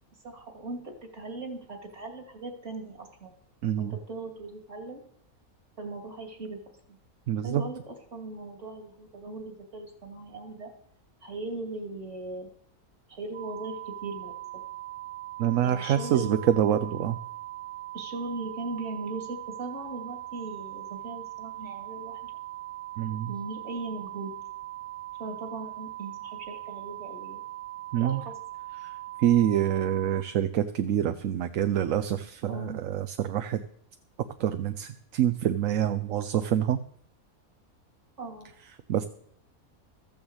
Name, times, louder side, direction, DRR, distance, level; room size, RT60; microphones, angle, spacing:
voice 1, 0.2-3.3 3.8-5.0 5.8-6.6 6.9-7.0 7.4-10.7 11.2-12.5 13.1-14.3 15.6-16.4 17.9-22.3 23.3-24.3 25.2-27.4 28.0-28.4 32.5-32.8 38.2-38.5, right 2 dB, 50° right, 3 dB, 2.8 m, -39 dB
voice 2, 3.6-4.0 7.3-7.6 15.4-17.2 23.0-23.3 27.9-28.2 29.2-33.6 34.4-36.8 38.9-39.1, right 10 dB, 70° right, 10 dB, 1.0 m, -26 dB
sound 1, 13.3-30.2, right 16 dB, 35° right, 1.4 m, -40 dB
14.0 x 7.1 x 8.0 m, 0.69 s
omnidirectional pair, 1.5 m